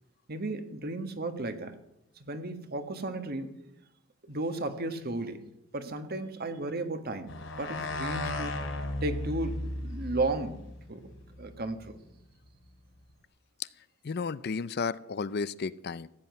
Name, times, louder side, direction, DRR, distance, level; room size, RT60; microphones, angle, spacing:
voice 1, 0.3-1.7 2.3-3.5 4.3-5.4 5.7-7.3 7.6-8.6 9.0-10.6 10.9-11.1 11.4-12.0, right 2 dB, 50° right, 8 dB, 1.5 m, -34 dB
sound 1, 7.3-11.9, left 1 dB, 75° left, 3.6 m, -36 dB
voice 2, 14.0-16.1, left 5 dB, 55° left, 17 dB, 0.5 m, -33 dB
15.5 x 7.8 x 9.4 m, 0.84 s
head